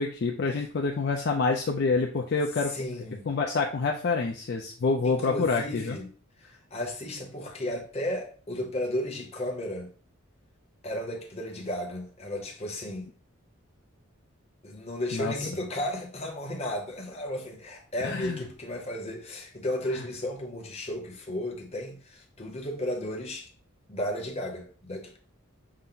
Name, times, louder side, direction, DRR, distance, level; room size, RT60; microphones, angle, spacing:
voice 1, 0.0-2.7 3.3-6.0 15.1-15.5 18.0-18.4, left 4 dB, 50° left, 0.4 m, -27 dB
voice 2, 2.7-3.3 5.0-6.1 6.4-9.9 10.8-13.1 14.6-23.5 23.9-25.2, left 1 dB, 30° left, 0.8 m, -34 dB
5.6 x 2.1 x 3.8 m
head